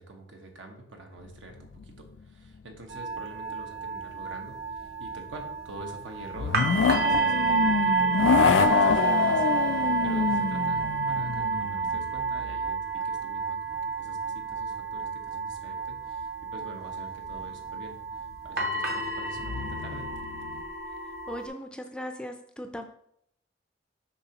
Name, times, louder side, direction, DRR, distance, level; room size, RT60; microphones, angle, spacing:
voice 1, 0.0-20.1, right 2 dB, 85° right, 3 dB, 1.1 m, -46 dB
sound 1, 1.5-2.2 2.5-2.6 6.3-12.8 17.6-17.7 19.3-20.6, left 6 dB, 85° left, 0.4 m, -27 dB
sound 2, 2.9-21.5, right 5 dB, 50° right, 0.9 m, -30 dB
voice 2, 21.3-22.8, equal, 5° left, 6 dB, 0.4 m, -38 dB
6.9 x 4.9 x 2.9 m, 0.71 s
head